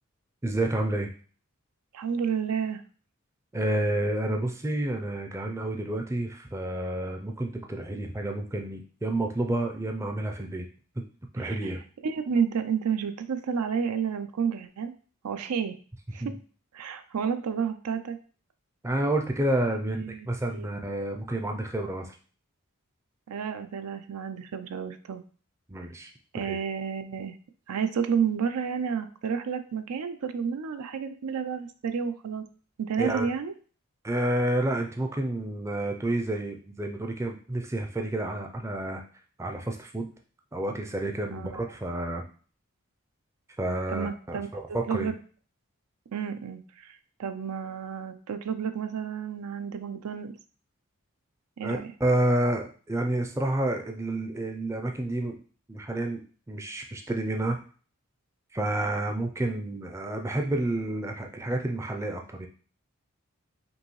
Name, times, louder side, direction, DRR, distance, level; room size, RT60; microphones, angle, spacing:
voice 1, 0.4-1.1 3.5-10.7 11.3-11.8 16.2-16.4 18.8-22.2 25.7-26.1 26.4-26.6 33.0-33.3 34.0-39.0 39.4-40.1 40.5-42.2 43.6-45.1 51.6-55.4 55.7-57.6 58.5-62.5, right 1 dB, 10° right, 3 dB, 0.4 m, -29 dB
voice 2, 1.9-2.8 11.4-11.8 12.0-14.9 15.2-15.7 16.1-16.3 16.7-18.2 19.9-20.8 23.3-25.2 26.3-27.4 27.7-32.4 32.8-33.5 41.3-41.5 43.9-44.5 44.9-45.1 46.1-50.3 51.6-51.9, right 6 dB, 90° right, 10 dB, 0.5 m, -31 dB
5.2 x 2.7 x 3.1 m, 0.41 s
head